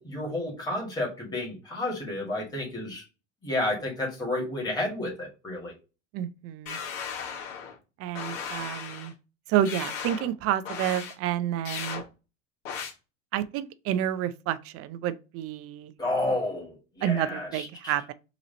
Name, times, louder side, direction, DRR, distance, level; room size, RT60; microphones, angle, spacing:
voice 1, 0.0-3.0 3.4-5.7 16.0-17.9, left 1 dB, 10° left, 2.0 m, -31 dB
voice 2, 6.1-6.8 8.0-9.1 9.5-12.0 13.3-15.9 17.0-18.1, right 11 dB, 40° right, 0.5 m, -29 dB
sound 1, 6.7-7.8 8.2-9.1 9.7-10.3 10.7-11.1 11.7-12.0 12.7-12.9, left 7 dB, 55° left, 1.5 m, -36 dB
3.9 x 3.0 x 3.9 m
hypercardioid pair, 95°, 38 cm